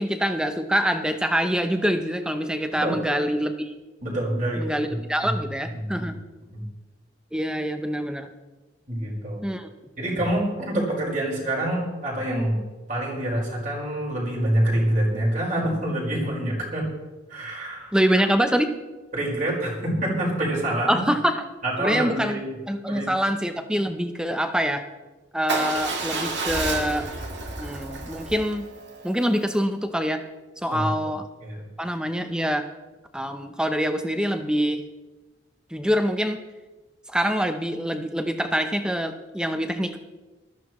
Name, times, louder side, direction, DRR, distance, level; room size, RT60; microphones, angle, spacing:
voice 1, 0.0-3.7 4.6-6.2 7.3-8.3 9.4-9.7 17.9-18.7 20.9-21.4 21.8-24.9 25.3-27.1 27.6-28.7 29.0-30.2 30.6-31.3 31.8-32.7 33.1-34.8 35.7-36.4 37.1-40.0, equal, 5° right, 7 dB, 0.8 m, -25 dB
voice 2, 4.0-5.3 5.9-6.1 6.5-6.6 8.9-9.4 10.0-12.6 12.9-16.9 17.3-17.9 19.1-21.0 21.6-22.5 22.9-23.1 30.7-31.1 31.4-31.6, right 1 dB, 40° right, -4 dB, 5.0 m, -26 dB
Motorcycle / Engine starting / Idling, 25.5-29.6, right 3 dB, 60° right, 2.2 m, -31 dB
19.5 x 13.5 x 3.2 m, 1.2 s
head